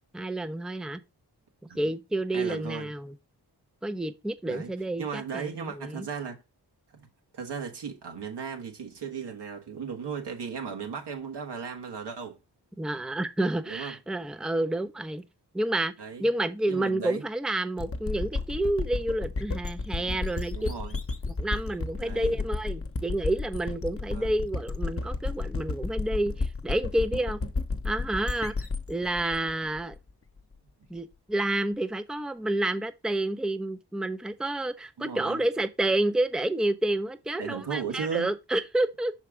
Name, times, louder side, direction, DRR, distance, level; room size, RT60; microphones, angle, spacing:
voice 1, 0.1-1.0 1.6-3.1 3.8-6.1 12.8-15.2 15.5-15.9 16.2-20.7 21.3-27.4 27.8-28.5 28.9-30.0 30.9-39.1, right 1 dB, ahead, 0.6 m, -29 dB
voice 2, 2.3-2.9 4.5-4.7 5.0-6.4 7.0-7.1 7.3-12.4 13.7-13.9 16.0-16.3 16.7-17.2 20.5-21.0 22.0-22.4 24.1-24.3 35.0-35.4 37.4-38.3, right 6 dB, 85° right, 1.6 m, -36 dB
sound 1, 17.8-30.4, left 3 dB, 35° left, 1.0 m, -32 dB
5.9 x 4.5 x 4.8 m
cardioid pair, 45°, 40 cm